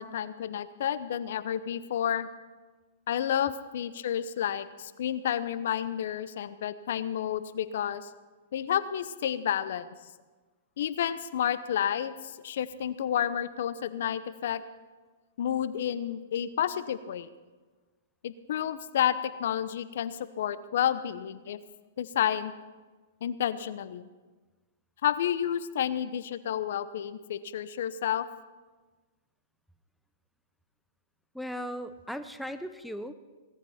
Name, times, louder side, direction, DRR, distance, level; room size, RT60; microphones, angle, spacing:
voice 1, 0.0-2.3 3.1-8.1 8.5-9.9 10.8-14.6 15.4-17.3 18.2-21.6 22.0-22.5 23.2-24.1 25.0-28.2, left 10 dB, 65° left, 15 dB, 0.7 m, -30 dB
voice 2, 31.3-33.1, equal, ahead, 10 dB, 0.7 m, -37 dB
17.5 x 14.0 x 4.3 m, 1.3 s
hypercardioid pair, 125°, 0 cm